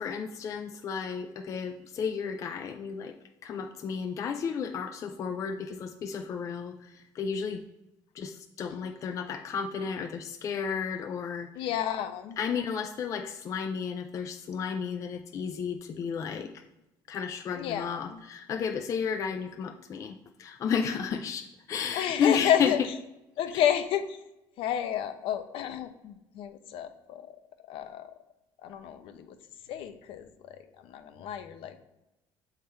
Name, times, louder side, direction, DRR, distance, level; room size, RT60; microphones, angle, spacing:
voice 1, 0.0-3.1 3.4-6.7 7.2-7.6 8.2-11.7 12.4-16.5 17.1-22.7, left 6 dB, 35° left, 6 dB, 0.4 m, -32 dB
voice 2, 11.5-12.4 17.5-18.2 21.9-22.9 23.4-24.2 24.6-27.3 27.7-28.1 28.6-29.3 29.7-31.8, left 10 dB, 65° left, 9 dB, 0.7 m, -31 dB
8.2 x 3.7 x 4.3 m, 0.94 s
cardioid pair, 160°, 10 cm